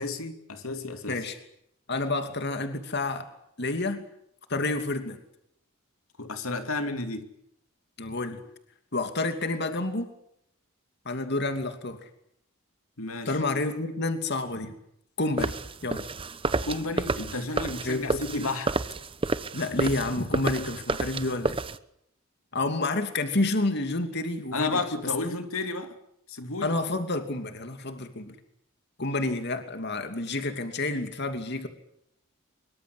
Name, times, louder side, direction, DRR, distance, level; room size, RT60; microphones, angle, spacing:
voice 1, 0.0-1.2 6.2-7.3 13.0-13.4 16.6-18.7 24.5-25.9 26.3-26.7, left 3 dB, 80° left, 7 dB, 2.8 m, -32 dB
voice 2, 1.9-3.3 3.6-4.1 4.5-5.2 8.0-8.4 8.9-10.1 11.0-12.1 13.2-14.7 15.2-15.5 15.8-16.1 17.8-18.4 19.5-21.6 22.5-24.7 25.2-25.4 26.6-28.4 29.0-31.7, left 2 dB, 50° left, 7 dB, 2.8 m, -29 dB
sound 1, 15.4-21.8, right 3 dB, 25° right, 1.0 m, -30 dB
25.5 x 23.5 x 8.1 m, 0.76 s
head